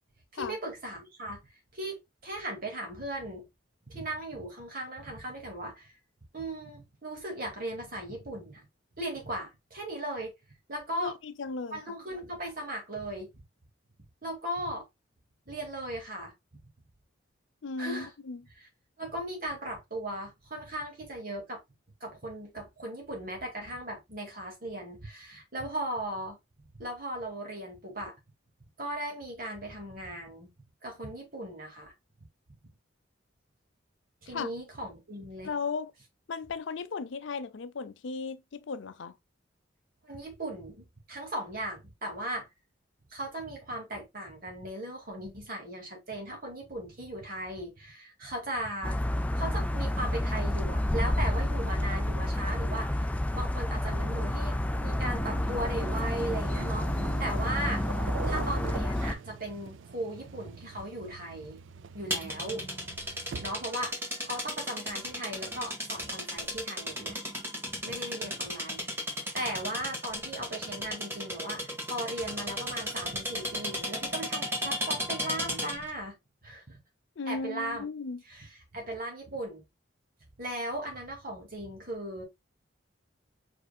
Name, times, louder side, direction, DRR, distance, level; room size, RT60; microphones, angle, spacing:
voice 1, 0.3-3.4 3.9-5.9 6.3-8.7 9.0-10.3 10.7-11.1 11.7-13.4 14.2-14.8 15.5-16.3 17.8-18.1 19.0-21.6 22.0-26.4 26.7-28.1 28.8-30.5 30.8-31.9 34.3-35.5 40.0-42.5 43.1-49.0 49.4-53.0 53.3-57.8 58.2-61.6 61.9-62.7 63.4-67.2 67.8-69.0 69.3-76.2 76.4-76.8 77.3-77.8 78.3-79.6 80.4-82.2, right 1 dB, 45° right, 2.2 m, -37 dB
voice 2, 11.0-11.8 17.6-18.4 34.3-34.5 35.4-35.9 36.3-39.2 77.2-78.2, left 4 dB, 70° left, 0.5 m, -36 dB
sound 1, 48.8-59.1, left 1 dB, 5° left, 0.3 m, -29 dB
sound 2, 54.7-63.8, right 5 dB, 75° right, 0.4 m, -43 dB
sound 3, 62.1-75.9, equal, 10° right, 1.5 m, -35 dB
4.9 x 4.6 x 2.3 m
head